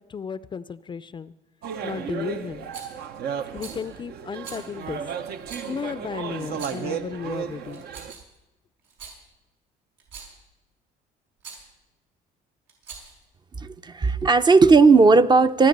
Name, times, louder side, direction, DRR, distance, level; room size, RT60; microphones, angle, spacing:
voice 1, 0.0-1.3 1.8-2.7 3.5-5.0 5.7-7.8, left 6 dB, 30° left, 16 dB, 0.4 m, -34 dB
sound 1, 1.6-8.1, right 7 dB, 70° right, 1.0 m, -34 dB
Rattle, 2.7-3.0 3.5-3.8 4.4-4.6 5.4-5.7 6.5-6.9 7.7-8.4 8.8-9.2 10.0-10.4 11.4-11.6 12.7-13.2, right 5 dB, 85° right, 5.2 m, -42 dB
voice 2, 13.6-15.7, right 4 dB, 25° right, 11 dB, 0.6 m, -16 dB
25.5 x 9.5 x 5.3 m, 1.0 s
cardioid pair, 110°, 17 cm